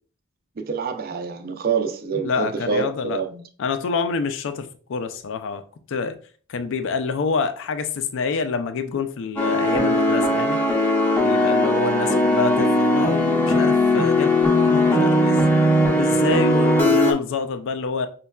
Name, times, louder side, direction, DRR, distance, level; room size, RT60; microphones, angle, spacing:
voice 1, 0.6-2.9 3.1-3.4, right 5 dB, 45° right, 0.4 m, -26 dB
voice 2, 2.2-3.2 3.6-5.6 5.9-6.1 6.5-10.6 11.2-18.1, left 4 dB, 65° left, 0.4 m, -27 dB
sound 1, 9.4-17.1, left 1 dB, 10° left, 0.6 m, -19 dB
5.2 x 2.2 x 2.2 m
head